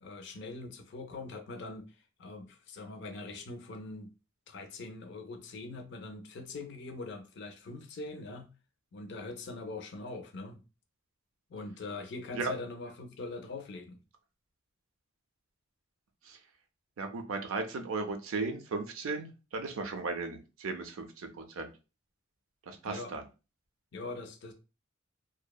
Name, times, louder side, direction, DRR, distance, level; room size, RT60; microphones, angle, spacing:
voice 1, 0.0-4.1 4.5-8.5 8.9-10.6 11.5-14.0 22.8-23.2 23.9-24.5, left 3 dB, 55° left, 0.4 m, -42 dB
voice 2, 17.0-21.7 22.7-23.2, right 3 dB, 80° right, 0.5 m, -36 dB
2.7 x 2.0 x 2.2 m
head